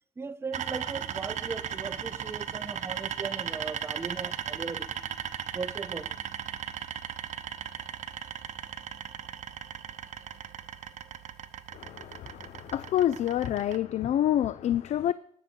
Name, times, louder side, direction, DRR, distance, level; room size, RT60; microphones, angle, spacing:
voice 1, 0.2-4.9 5.5-6.1, right 4 dB, 20° right, 0.5 m, -38 dB
sound 1, 0.5-13.8, right 9 dB, 65° right, 0.7 m, -37 dB
voice 2, 11.7-15.1, left 11 dB, 60° left, 0.4 m, -27 dB
18.0 x 6.6 x 4.4 m
cardioid pair, 125°, 13 cm